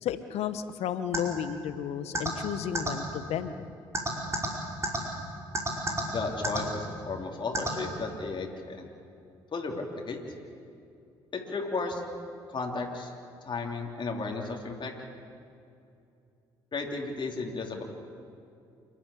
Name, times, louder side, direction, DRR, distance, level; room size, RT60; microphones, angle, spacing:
voice 1, 0.0-3.7, left 9 dB, 65° left, 12 dB, 1.2 m, -33 dB
sound 1, 1.1-1.2 2.1-2.3 2.7-2.9 3.9-4.5 4.8-5.0 5.5-6.0 6.4-6.6 7.5-7.7, right 1 dB, 25° right, 5.1 m, -28 dB
voice 2, 6.1-8.9 9.5-10.2 11.3-12.0 12.5-13.1 13.5-14.9 16.7-17.8, left 3 dB, 45° left, 1 dB, 3.3 m, -34 dB
28.0 x 12.0 x 8.6 m, 2.5 s
hypercardioid pair, 45°, 11 cm